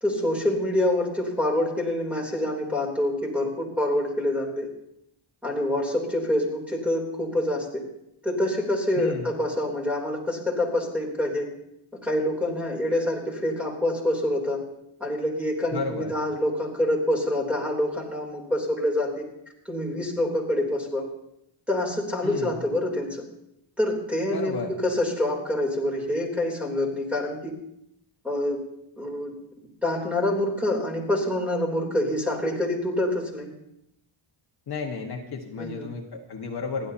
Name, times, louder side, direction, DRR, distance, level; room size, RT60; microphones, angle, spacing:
voice 1, 0.0-4.7 5.4-7.8 8.2-11.5 12.0-14.6 15.0-19.2 19.7-21.1 21.7-23.2 23.8-27.5 28.2-28.6 29.0-29.4 29.8-33.5 35.6-35.9, left 1 dB, ahead, -1 dB, 3.3 m, -26 dB
voice 2, 9.0-9.3 15.7-16.1 22.2-22.6 24.3-24.7 34.7-36.9, left 4 dB, 50° left, 1 dB, 1.6 m, -32 dB
29.5 x 12.0 x 2.9 m, 0.79 s
wide cardioid pair, 175°, 50 cm